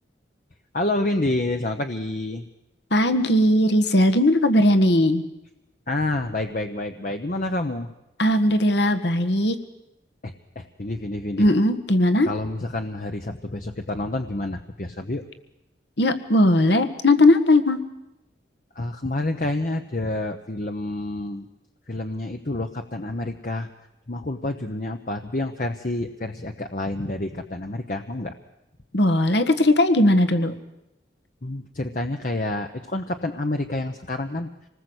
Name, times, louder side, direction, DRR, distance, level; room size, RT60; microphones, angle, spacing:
voice 1, 0.7-2.5 5.9-7.9 10.2-11.5 12.3-15.2 18.7-21.5 21.9-23.7 24.1-28.3 31.4-34.5, left 2 dB, 45° left, 5 dB, 1.1 m, -28 dB
voice 2, 2.9-5.2 8.2-9.5 11.4-12.3 16.0-17.8 28.9-30.5, left 1 dB, 65° left, 9 dB, 1.7 m, -18 dB
26.5 x 19.5 x 8.1 m, 0.92 s
head